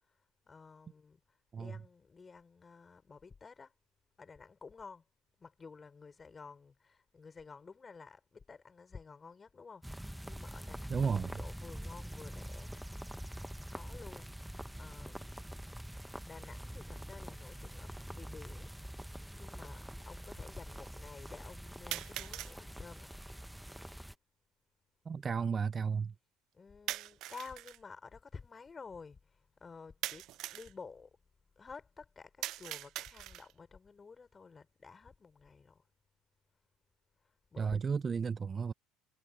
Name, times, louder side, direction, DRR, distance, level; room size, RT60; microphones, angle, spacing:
voice 1, 0.1-3.7 4.2-5.0 5.4-11.1 11.4-12.7 13.7-15.7 16.2-18.7 19.3-23.1 26.5-31.2 31.6-35.9 37.2-37.8, left 5 dB, 25° left, 4.3 m, -52 dB
sound 1, 9.8-24.1, equal, 5° right, 1.2 m, -45 dB
voice 2, 10.9-11.4 25.1-26.1 37.6-38.7, right 6 dB, 30° right, 0.4 m, -33 dB
sound 2, 17.5-17.6 18.6-18.7 21.9-22.6 26.9-27.8 30.0-30.7 32.4-33.6, right 15 dB, 60° right, 0.8 m, -41 dB
supercardioid pair, 85°, 0 cm